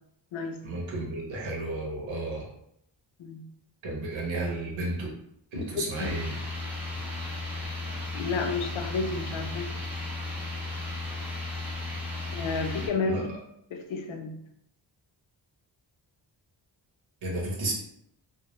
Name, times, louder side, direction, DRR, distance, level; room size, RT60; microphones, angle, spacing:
voice 1, 0.6-2.5 3.8-5.1 5.5-6.3 13.0-13.2 17.2-17.7, right 2 dB, 75° right, -3 dB, 0.8 m, -32 dB
voice 2, 5.5-6.1 8.1-9.7 12.3-13.3 13.7-14.3, left 4 dB, 85° left, 4 dB, 0.6 m, -31 dB
sound 1, 5.9-12.9, left 2 dB, 5° right, 1.0 m, -35 dB
2.1 x 2.0 x 3.0 m, 0.76 s
wide cardioid pair, 115°, 46 cm